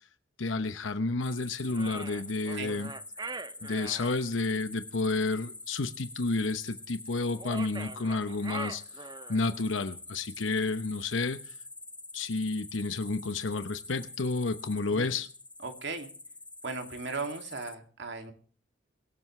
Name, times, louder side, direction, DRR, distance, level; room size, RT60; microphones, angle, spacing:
voice 1, 0.4-2.9 3.6-11.5 12.1-15.3, left 3 dB, 85° left, 0.9 m, -31 dB
sound 1, 1.2-17.8, left 2 dB, 5° left, 0.9 m, -46 dB
sound 2, 1.7-4.2 7.3-9.5, right 4 dB, 20° right, 0.6 m, -42 dB
voice 2, 1.7-2.1 2.5-2.8 14.9-15.1 15.6-16.1 16.6-18.3, right 3 dB, 65° right, 2.5 m, -38 dB
24.0 x 12.5 x 3.2 m
head